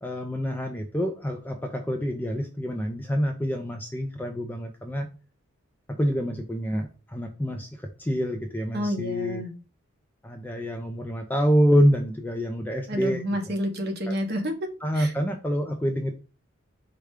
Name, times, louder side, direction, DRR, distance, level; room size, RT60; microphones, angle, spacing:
voice 1, 0.0-5.1 5.9-9.4 10.2-13.5 14.1-14.2 14.8-16.2, equal, 10° left, 4 dB, 0.4 m, -27 dB
voice 2, 8.7-9.5 12.9-14.7 14.9-15.1, equal, 45° right, 4 dB, 0.9 m, -29 dB
4.7 x 2.2 x 4.8 m, 0.34 s
head